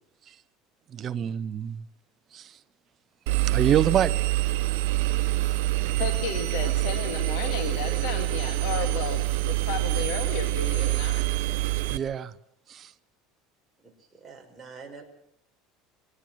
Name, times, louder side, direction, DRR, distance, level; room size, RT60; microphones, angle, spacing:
voice 1, 0.9-1.8 2.3-2.5 3.4-4.1 11.9-12.3 12.7-12.9, right 9 dB, 30° right, 12 dB, 0.9 m, -26 dB
Engine, 3.3-12.0, right 17 dB, 85° right, 1.0 m, -26 dB
voice 2, 6.0-11.2, left 8 dB, 75° left, 6 dB, 2.2 m, -33 dB
voice 3, 6.5-8.2 13.8-15.0, right 4 dB, 5° right, -2 dB, 5.3 m, -45 dB
23.5 x 18.0 x 7.7 m, 0.73 s
cardioid pair, 150°, 0 cm